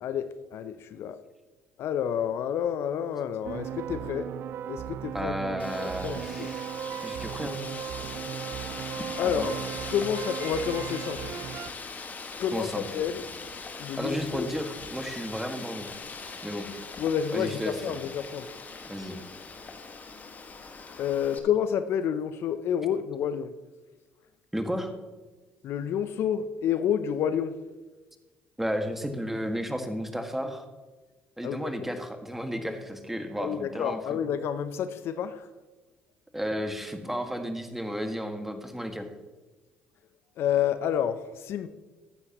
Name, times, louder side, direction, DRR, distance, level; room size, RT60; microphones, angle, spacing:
voice 1, 0.0-1.2 1.8-4.3 4.7-5.6 6.0-6.5 9.2-9.5 9.9-11.4 12.4-13.2 13.8-14.5 17.0-18.5 21.0-23.5 25.6-27.6 31.4-31.7 33.4-35.5 40.4-41.7, left 8 dB, 65° left, 12 dB, 0.6 m, -29 dB
sound 1, 3.4-11.7, right 10 dB, 55° right, 0.3 m, -37 dB
voice 2, 5.1-6.7 7.0-7.6 9.2-9.5 12.5-12.8 14.0-15.9 16.4-16.7 17.3-17.9 18.9-19.2 24.5-24.9 28.6-30.6 31.4-34.2 36.3-39.1, equal, 5° right, 6 dB, 1.8 m, -33 dB
Wind, 5.6-21.4, left 4 dB, 40° left, 1.7 m, -41 dB
14.0 x 9.8 x 3.0 m, 1.2 s
hypercardioid pair, 60°, 5 cm